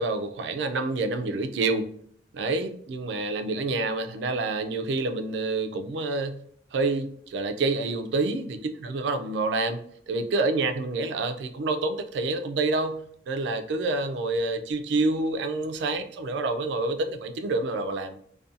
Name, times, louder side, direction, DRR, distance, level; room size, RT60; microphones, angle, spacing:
voice 1, 0.0-2.0 2.3-6.4 6.7-18.2, right 3 dB, 80° right, 8 dB, 0.3 m, -28 dB
2.4 x 2.2 x 2.6 m, 0.63 s
head